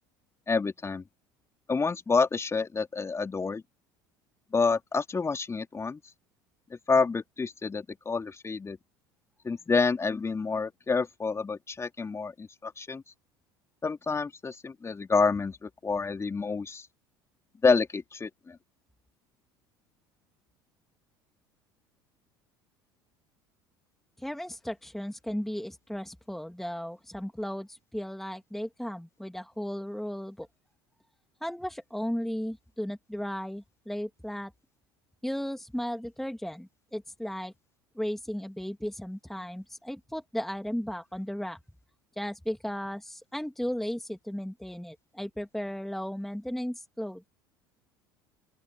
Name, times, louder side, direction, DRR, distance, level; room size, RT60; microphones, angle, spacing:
voice 1, 0.5-1.0 1.7-3.6 4.5-6.0 6.7-8.8 9.4-13.0 13.8-16.9 17.6-18.6, left 4 dB, 20° left, 3.7 m, -28 dB
voice 2, 24.2-30.5 31.4-34.5 35.2-37.5 38.0-41.6 42.2-47.3, equal, ahead, 2.1 m, -35 dB
open air
hypercardioid pair, 70°, 12 cm